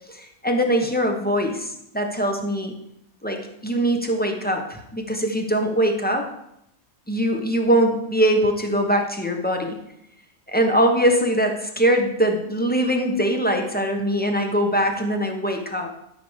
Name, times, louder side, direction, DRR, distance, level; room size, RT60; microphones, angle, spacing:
voice 1, 0.1-2.7 3.2-6.2 7.1-9.8 10.5-15.9, right 1 dB, 10° left, 3 dB, 0.9 m, -22 dB
12.0 x 4.3 x 6.3 m, 0.79 s
omnidirectional pair, 1.5 m